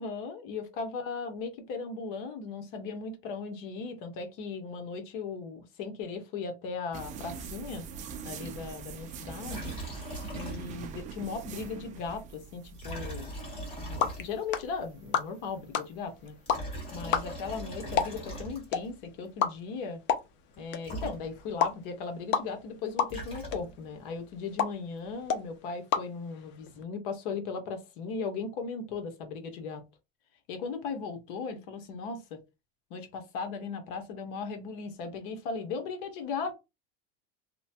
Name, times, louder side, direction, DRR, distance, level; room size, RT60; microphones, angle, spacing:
voice 1, 0.0-7.9 8.2-9.8 10.3-13.3 13.8-16.3 16.9-20.0 20.6-29.8 30.5-32.4 32.9-36.5, left 5 dB, 60° left, 0.9 m, -37 dB
sound 1, 6.9-17.1, right 6 dB, 25° right, 0.4 m, -44 dB
Liquid, 9.4-11.0 11.2-11.3 12.7-14.6 16.2-18.9 20.5-20.6 20.8-21.7 22.8-23.9, right 1 dB, 20° left, 1.5 m, -40 dB
sound 2, 13.5-26.8, left 7 dB, 40° left, 0.5 m, -34 dB
2.9 x 2.1 x 2.7 m
supercardioid pair, 135°, 30 cm